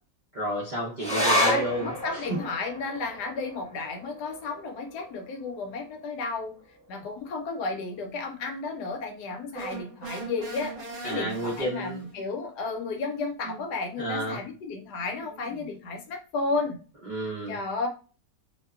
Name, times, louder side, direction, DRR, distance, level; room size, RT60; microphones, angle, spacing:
voice 1, 0.3-2.4 11.0-12.1 13.4-13.6 14.0-14.4 17.0-17.6, equal, 85° right, -5 dB, 0.4 m, -31 dB
sound 1, 1.0-7.8 8.1-8.2 8.5-9.2 9.8-9.9, equal, 10° left, 0.4 m, -32 dB
voice 2, 1.2-6.5 6.9-10.7 11.0-16.8 17.5-17.9, left 3 dB, 75° left, 4 dB, 1.1 m, -32 dB
sound 2, 9.5-12.2, right 3 dB, 60° right, 0.9 m, -39 dB
2.8 x 2.1 x 2.3 m, 0.36 s
omnidirectional pair, 1.9 m